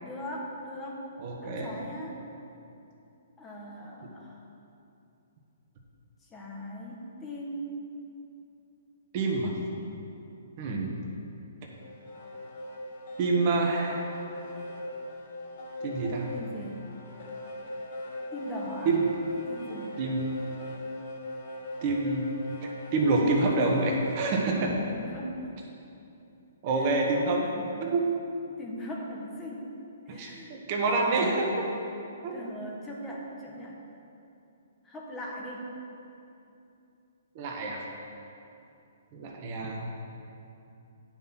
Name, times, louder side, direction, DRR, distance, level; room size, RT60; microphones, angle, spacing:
voice 1, 0.0-1.1 1.4-2.2 3.4-4.4 6.3-7.7 16.3-16.8 18.3-19.0 19.5-20.0 23.2-24.0 24.9-25.4 26.7-27.7 28.6-29.7 30.1-30.6 31.0-31.5 32.3-33.8 34.8-35.7, equal, 15° left, -3 dB, 1.3 m, -40 dB
voice 2, 1.2-1.7 9.1-9.6 10.6-11.0 13.2-14.1 15.8-16.3 18.8-19.0 20.0-20.3 21.8-22.3 22.9-24.7 26.6-27.4 27.8-28.1 30.1-31.5 32.2-32.3 37.3-37.8 39.1-39.9, right 3 dB, 40° right, -1 dB, 1.5 m, -27 dB
sound 1, 11.7-24.3, left 1 dB, 50° left, 1.7 m, -40 dB
9.1 x 5.9 x 6.0 m, 2.7 s
hypercardioid pair, 140°, 0 cm